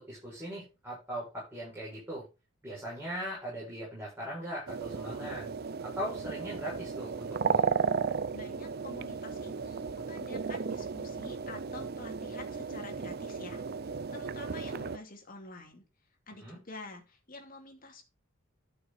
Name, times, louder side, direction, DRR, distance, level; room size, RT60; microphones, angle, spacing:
voice 1, 0.0-2.2 2.6-5.5 5.8-7.7 16.4-16.6, equal, 10° right, -7 dB, 6.7 m, -40 dB
sound 1, 4.7-15.0, right 5 dB, 50° right, 0.5 m, -34 dB
voice 2, 8.3-15.8 16.3-18.0, left 3 dB, 45° left, 3 dB, 2.5 m, -48 dB
12.5 x 6.1 x 4.3 m, 0.29 s
head